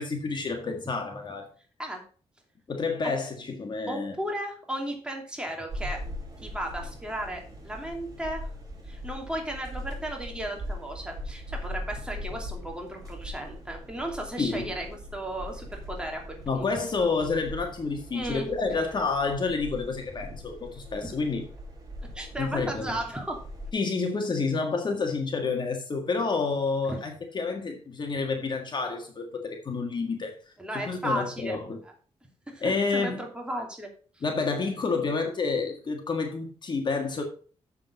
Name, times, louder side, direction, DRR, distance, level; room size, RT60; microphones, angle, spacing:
voice 1, 0.0-1.5 2.7-4.2 14.4-14.7 16.5-21.5 22.4-23.0 23.7-30.4 30.7-31.8 32.6-33.2 34.2-37.2, left 4 dB, 45° left, 1.7 m, -29 dB
voice 2, 3.9-6.0 6.4-8.5 8.8-16.6 18.1-18.5 20.3-20.4 21.0-21.1 22.0-23.4 26.9-27.0 30.6-31.6 31.8-31.9 32.5-33.9, right 1 dB, 10° right, 2.7 m, -35 dB
sound 1, 5.7-23.7, equal, 35° right, 5.4 m, -40 dB
7.6 x 6.9 x 5.2 m
cardioid pair, 100°, 11 cm